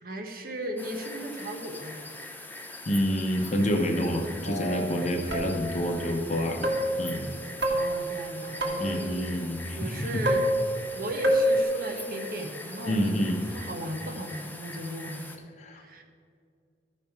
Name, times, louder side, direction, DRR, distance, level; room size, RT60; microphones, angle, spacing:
voice 1, 0.0-2.0 7.7-9.4 9.7-10.4 11.0-15.2 15.7-16.0, equal, 55° right, 3 dB, 1.1 m, -36 dB
sound 1, 0.8-15.4, left 2 dB, 10° left, 0.7 m, -43 dB
voice 2, 2.9-6.7 7.0-7.3 8.8-10.1 12.9-13.4 15.6-15.8, equal, 40° left, 4 dB, 1.0 m, -28 dB
sound 2, 4.4-4.9 5.3-5.9 6.6-7.1 7.6-9.1 10.3-10.9 11.2-11.6, equal, 75° right, 1.7 m, -27 dB
13.5 x 5.5 x 4.6 m, 2.3 s
head